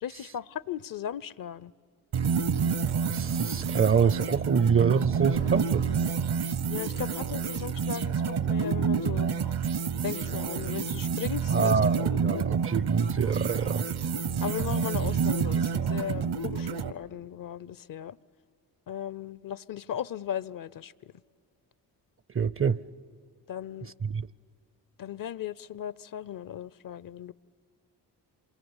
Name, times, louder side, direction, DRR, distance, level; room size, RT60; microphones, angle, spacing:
voice 1, 0.0-1.7 6.7-9.3 10.0-11.8 12.1-12.5 14.4-18.2 18.9-21.1 23.5-23.9 25.0-27.3, left 10 dB, 50° left, 0.6 m, -37 dB
sound 1, 2.1-16.9, right 6 dB, 60° right, 1.0 m, -28 dB
Livestock farm animals working animals, 2.7-7.7, right 4 dB, 85° right, 6.1 m, -51 dB
voice 2, 3.1-5.8 11.5-13.8 22.3-22.8 24.0-24.3, right 6 dB, 30° right, 0.6 m, -25 dB
26.5 x 23.5 x 8.0 m
hypercardioid pair, 45°, 44 cm